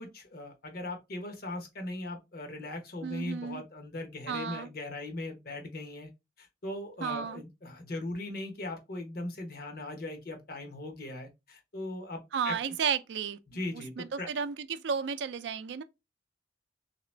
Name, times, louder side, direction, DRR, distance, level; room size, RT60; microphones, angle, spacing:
voice 1, 0.0-6.1 6.4-12.6 13.5-14.3, left 2 dB, 55° left, 1.0 m, -39 dB
voice 2, 3.0-3.6 4.3-4.7 7.0-7.4 12.3-13.4 14.0-15.8, right 6 dB, 70° right, 0.4 m, -33 dB
3.3 x 2.9 x 3.2 m
head